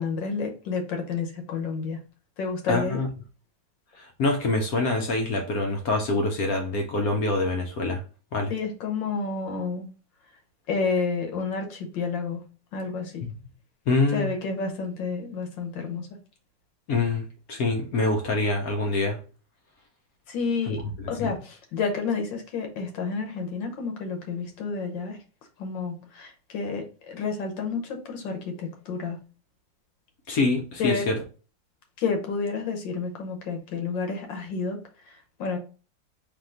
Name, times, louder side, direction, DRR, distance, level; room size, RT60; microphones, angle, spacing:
voice 1, 0.0-2.0 2.4-3.0 8.5-9.9 10.7-12.4 12.7-13.2 14.1-16.1 20.3-20.8 21.1-25.2 25.6-29.2 30.8-31.0 32.0-34.8 35.4-35.6, left 4 dB, 90° left, 1.6 m, -30 dB
voice 2, 2.7-3.1 4.0-8.0 8.3-8.5 13.2-13.3 13.9-14.3 16.9-19.2 20.7-20.8 21.2-21.4 30.3-31.2, left 3 dB, 65° left, 1.0 m, -25 dB
3.6 x 2.8 x 3.7 m
omnidirectional pair, 2.0 m